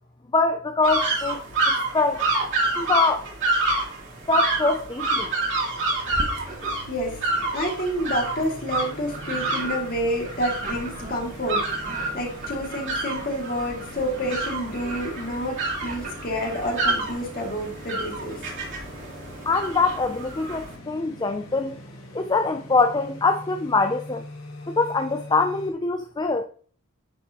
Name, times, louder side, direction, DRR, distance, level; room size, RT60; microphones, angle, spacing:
voice 1, 0.3-2.2 2.8-3.3 4.3-5.3 19.5-21.8 22.1-24.3 24.7-26.4, left 3 dB, 20° left, 0.4 m, -24 dB
sound 1, 0.8-20.7, right 2 dB, 55° right, 2.9 m, -28 dB
sound 2, 6.0-25.7, left 1 dB, 80° left, 2.3 m, -43 dB
sound 3, 6.1-6.9 7.3-17.1, right 1 dB, 35° right, 1.6 m, -37 dB
voice 2, 7.5-11.6 12.1-18.4, equal, 40° left, 2.3 m, -29 dB
10.0 x 5.3 x 2.9 m
head